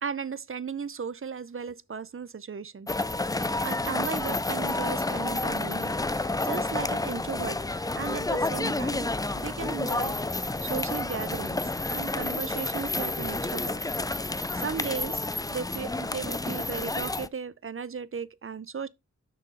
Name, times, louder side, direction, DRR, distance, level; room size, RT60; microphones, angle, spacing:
voice 1, 0.0-2.9 3.2-9.1 9.4-10.2 10.6-11.6 11.9-13.8 14.5-18.9, right 6 dB, 45° right, 0.6 m, -36 dB
sound 1, 2.9-17.3, left 2 dB, 10° left, 0.4 m, -30 dB
6.6 x 6.1 x 3.7 m
wide cardioid pair, 80°, 30 cm